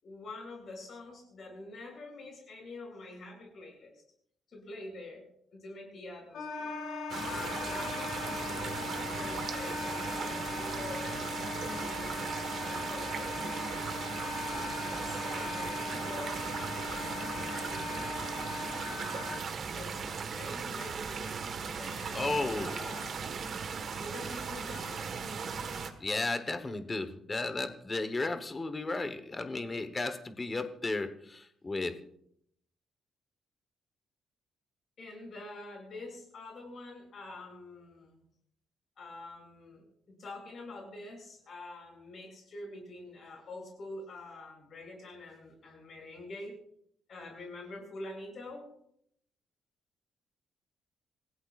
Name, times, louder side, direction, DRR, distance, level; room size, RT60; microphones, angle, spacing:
voice 1, 0.0-4.0 4.5-5.2 5.5-6.8 7.2-11.3 11.8-12.3 12.6-14.0 14.4-18.1 19.7-21.2 21.8-23.1 24.0-25.1 35.0-38.2 39.0-39.9 40.2-46.6 47.1-48.7, left 2 dB, 45° left, 0 dB, 6.7 m, -46 dB
Wind instrument woodwind instrument, 6.3-19.4, left 3 dB, 90° left, 5.5 m, -39 dB
sound 1, 7.1-25.9, right 5 dB, 45° right, 1.4 m, -38 dB
voice 2, 22.1-22.7 26.0-32.0, left 3 dB, 20° left, 9 dB, 1.1 m, -34 dB
28.0 x 16.0 x 2.5 m, 0.70 s
cardioid pair, 170°, 0 cm